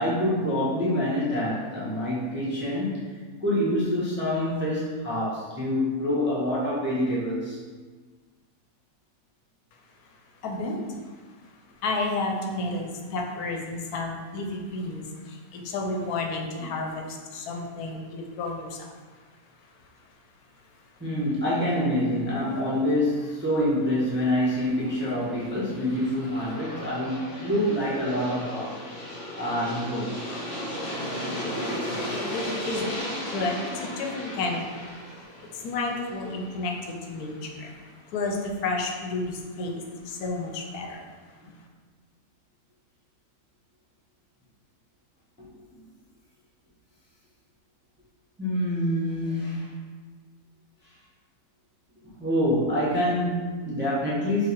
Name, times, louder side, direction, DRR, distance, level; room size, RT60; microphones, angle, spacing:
voice 1, 0.0-3.1 3.4-7.6 21.0-28.8 29.4-30.1 30.8-30.9 45.4-45.5 48.4-49.7 52.2-54.5, left 1 dB, 10° right, -8 dB, 0.5 m, -26 dB
voice 2, 10.1-11.1 11.4-11.5 11.8-19.3 19.8-19.9 30.7-41.1, left 2 dB, 80° left, 2 dB, 1.1 m, -32 dB
Aircraft, 24.5-37.4, equal, 55° left, 1.4 m, -36 dB
4.0 x 2.5 x 4.3 m, 1.4 s
omnidirectional pair, 1.6 m